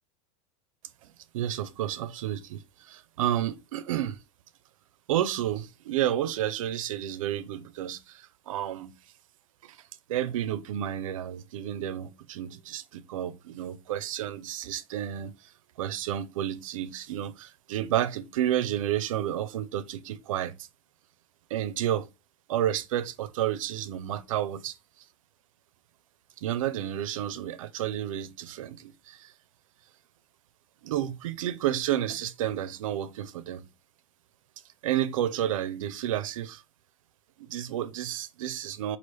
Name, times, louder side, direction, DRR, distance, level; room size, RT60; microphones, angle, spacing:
voice 1, 1.3-4.2 5.1-8.9 9.7-9.8 10.1-15.3 15.8-20.5 21.5-22.1 22.5-24.8 26.4-29.3 30.8-33.6 34.8-36.6 37.4-39.0, right 11 dB, 85° right, 0.4 m, -31 dB
3.2 x 2.4 x 3.0 m
supercardioid pair, 125°, 17 cm